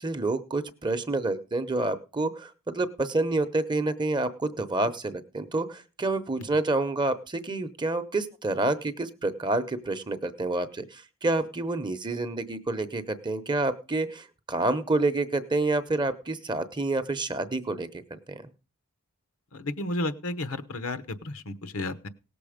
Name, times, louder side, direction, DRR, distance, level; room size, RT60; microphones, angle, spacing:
voice 1, 0.0-18.0 18.3-18.4, right 2 dB, 20° right, 11 dB, 0.9 m, -28 dB
voice 2, 19.5-22.1, left 2 dB, 65° left, 12 dB, 1.0 m, -32 dB
18.0 x 6.9 x 5.1 m, 0.32 s
head